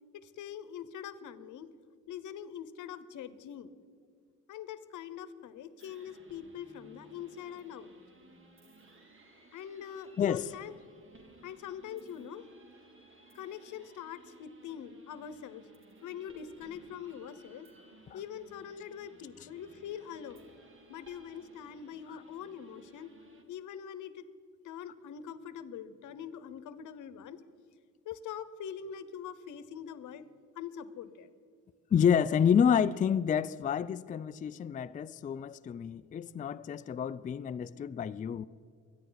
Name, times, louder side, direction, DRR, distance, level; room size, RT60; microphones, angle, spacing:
voice 1, 0.1-1.7 2.1-3.7 4.5-7.9 9.5-10.7 11.4-12.5 13.3-15.7 16.0-17.7 18.1-20.4 20.9-23.1 23.5-24.2 24.6-27.4 28.0-30.2 30.5-31.3, left 8 dB, 80° left, 0.9 m, -43 dB
sound 1, 5.8-23.4, right 2 dB, 40° right, 2.5 m, -59 dB
voice 2, 10.2-10.5 22.1-22.2 31.9-38.5, left 7 dB, 25° left, 0.3 m, -29 dB
23.0 x 10.5 x 4.0 m
cardioid pair, 90°, 30 cm